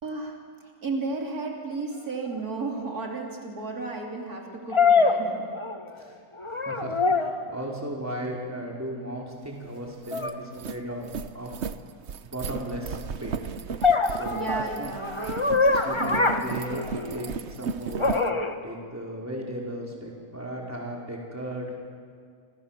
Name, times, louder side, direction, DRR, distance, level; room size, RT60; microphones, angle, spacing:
voice 1, 0.0-5.5 10.6-10.7 14.3-16.7, right 3 dB, 75° right, 0 dB, 3.8 m, -34 dB
sound 1, 2.3-2.4 4.7-6.0 6.4-7.5 10.1-10.4 13.8-17.3 18.0-18.5, left 4 dB, 20° left, 1.4 m, -24 dB
voice 2, 6.5-11.5 12.2-13.5 14.1-14.4 14.8-14.9 15.7-16.8 17.1-18.1 18.6-21.7, right 1 dB, 10° right, -2 dB, 4.8 m, -36 dB
sound 2, 9.4-9.5 9.9-18.3, right 6 dB, 50° right, 1.1 m, -35 dB
29.5 x 26.5 x 7.5 m, 2.1 s
omnidirectional pair, 1.6 m